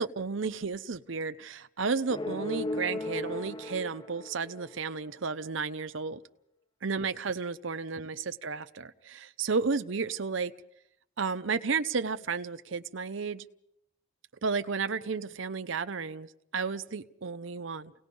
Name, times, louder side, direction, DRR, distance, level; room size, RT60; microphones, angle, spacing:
voice 1, 0.0-6.2 6.8-10.5 11.2-13.4 14.4-17.9, right 5 dB, 75° right, 9 dB, 0.7 m, -32 dB
sound 1, 2.1-5.0, left 2 dB, 25° left, 0.8 m, -36 dB
29.5 x 18.5 x 5.4 m, 0.81 s
head